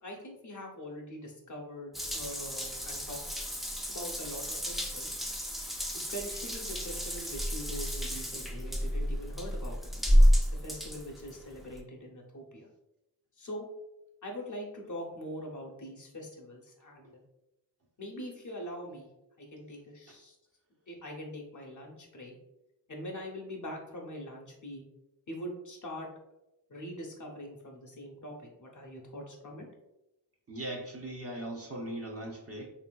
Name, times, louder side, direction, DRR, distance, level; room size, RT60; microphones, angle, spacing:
voice 1, 0.0-3.2 3.9-5.2 5.9-9.9 10.5-12.7 13.4-13.7 14.2-17.2 18.0-19.1 19.4-20.4 20.9-22.4 22.9-24.8 25.3-26.1 26.7-29.6, equal, 45° left, 0 dB, 0.7 m, -43 dB
Water tap faucet / Bathtub (filling or washing) / Drip, 1.9-11.8, equal, ahead, 0.4 m, -30 dB
voice 2, 30.5-32.7, right 1 dB, 35° right, -1 dB, 0.7 m, -39 dB
3.0 x 2.6 x 2.2 m, 0.92 s
cardioid pair, 50°, 42 cm